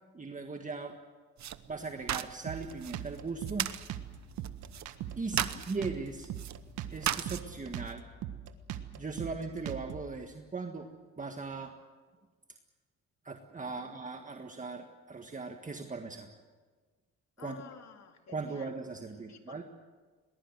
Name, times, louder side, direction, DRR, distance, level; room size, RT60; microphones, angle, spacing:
voice 1, 0.1-1.0 1.7-3.7 5.2-6.3 6.9-8.0 8.9-10.9 11.2-11.7 13.2-16.3 17.4-17.6 18.3-19.6, right 4 dB, 25° right, 4 dB, 1.7 m, -39 dB
sound 1, 1.4-7.9, right 11 dB, 65° right, 1.0 m, -38 dB
Drum kit, 2.5-10.1, right 10 dB, 90° right, 1.5 m, -41 dB
voice 2, 5.3-5.7 13.6-14.0 17.4-18.8 19.3-19.6, left 7 dB, 60° left, 5 dB, 2.7 m, -52 dB
21.5 x 20.5 x 7.9 m, 1.4 s
cardioid pair, 90°, 30 cm